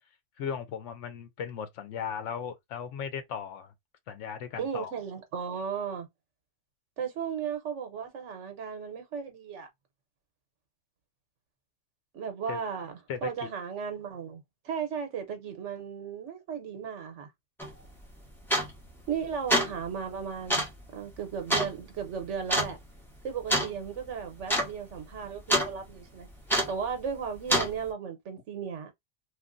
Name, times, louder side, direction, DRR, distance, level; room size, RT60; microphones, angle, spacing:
voice 1, 0.4-3.7 4.1-4.9 12.5-12.6 13.1-13.2, left 7 dB, 80° left, 1.0 m, -36 dB
voice 2, 4.6-6.1 7.0-9.7 12.1-17.3 19.1-20.7 20.9-22.8 23.2-26.3 26.7-28.9, right 7 dB, 75° right, 1.1 m, -35 dB
sound 1, 17.6-17.7 18.5-18.9 19.3-19.8 20.5-20.8 21.5-21.7 22.5-22.7 23.5-23.7 24.0-24.1 24.4-24.7 25.0-25.7 26.5-26.8 27.5-27.7, equal, ahead, 0.8 m, -26 dB
3.1 x 2.5 x 2.5 m
omnidirectional pair, 1.2 m